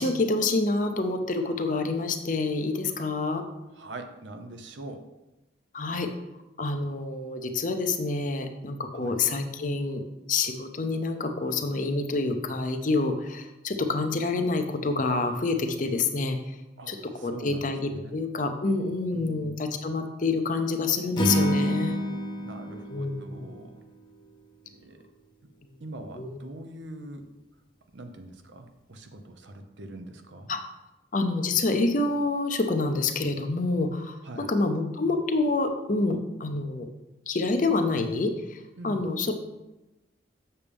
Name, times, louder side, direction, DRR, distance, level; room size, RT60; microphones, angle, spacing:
voice 1, 0.0-3.4 5.7-6.1 6.6-10.0 10.3-16.6 16.9-17.0 17.2-22.0 22.9-23.5 26.2-26.4 30.5-30.6 31.1-34.2 34.5-36.9 37.3-38.6 38.8-39.3, left 3 dB, 45° left, 6 dB, 0.6 m, -27 dB
voice 2, 3.7-5.1 9.0-9.2 16.8-18.2 19.1-19.6 22.4-23.8 24.6-25.0 25.8-27.3 27.9-30.5 34.2-34.5 38.8-39.1, right 1 dB, 75° right, 6 dB, 0.8 m, -43 dB
Acoustic guitar / Strum, 21.2-24.4, equal, 25° left, 1.0 m, -29 dB
7.1 x 6.8 x 3.5 m, 1.0 s
head